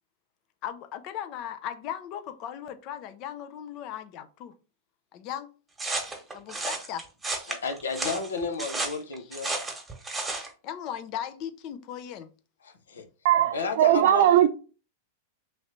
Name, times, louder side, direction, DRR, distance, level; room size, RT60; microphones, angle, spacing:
voice 1, 0.6-4.5 5.1-5.5 6.3-7.1 10.6-12.3, left 10 dB, 45° left, 0.6 m, -37 dB
sound 1, 5.8-10.5, right 2 dB, 15° right, 1.3 m, -32 dB
voice 2, 7.5-9.6 12.6-13.0 13.5-14.5, left 4 dB, 80° left, 0.8 m, -32 dB
voice 3, 13.2-14.5, right 11 dB, 60° right, 0.5 m, -19 dB
3.1 x 3.0 x 3.8 m
hypercardioid pair, 100°, 0 cm